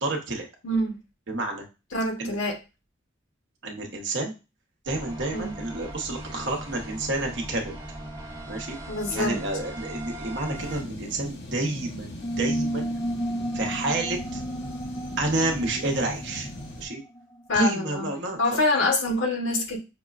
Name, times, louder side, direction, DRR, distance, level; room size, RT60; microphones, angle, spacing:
voice 1, 0.0-0.5 1.3-1.6 2.2-2.3 3.6-4.3 4.9-7.7 8.5-8.8 9.1-12.9 13.5-14.4 15.2-16.5 16.8-17.0 17.5-18.6, right 2 dB, 60° right, 2 dB, 0.9 m, -29 dB
voice 2, 0.6-1.0 1.9-2.6 5.3-5.6 8.9-9.4 17.5-18.1 18.4-19.8, left 2 dB, 80° left, 2 dB, 1.0 m, -25 dB
sound 1, 4.9-10.8, right 1 dB, 25° right, 0.9 m, -39 dB
sound 2, 10.5-16.9, left 1 dB, 55° left, 0.8 m, -40 dB
sound 3, 12.2-17.4, right 1 dB, 15° left, 0.5 m, -32 dB
5.9 x 2.1 x 2.4 m, 0.28 s
head